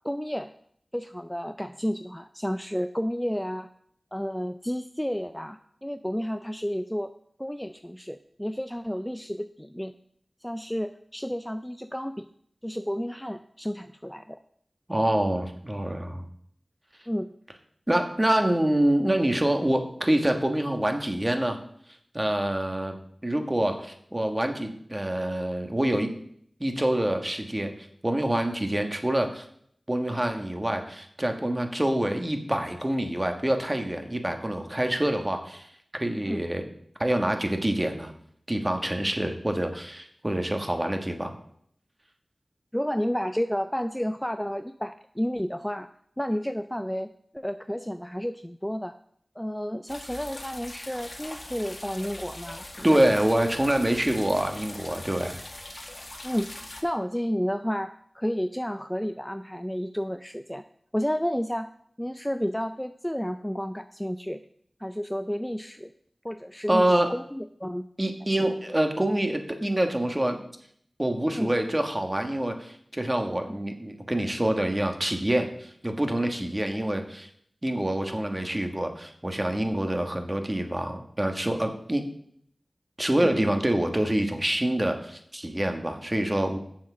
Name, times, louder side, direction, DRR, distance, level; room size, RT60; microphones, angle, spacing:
voice 1, 0.0-0.5 0.9-3.7 4.1-7.1 7.4-9.9 10.4-12.3 12.6-14.4 17.1-17.3 36.3-36.4 42.7-45.9 46.2-49.0 49.4-53.0 56.2-60.6 60.9-61.7 62.0-64.4 64.8-65.9 66.2-67.9 68.4-68.5 71.3-71.5 73.5-73.6 83.2-83.3, equal, 5° left, 9 dB, 0.4 m, -31 dB
voice 2, 14.9-16.2 17.9-21.6 22.1-22.9 23.2-26.1 26.6-29.5 29.9-35.7 36.0-36.7 37.0-38.1 38.5-41.3 52.8-55.4 66.7-67.1 68.0-70.4 71.0-77.3 77.6-82.1 83.0-86.6, right 1 dB, 25° right, 5 dB, 1.4 m, -26 dB
sound 1, 49.9-56.8, left 1 dB, 45° left, 1.6 m, -41 dB
7.3 x 7.3 x 6.1 m, 0.67 s
wide cardioid pair, 50°, 0 cm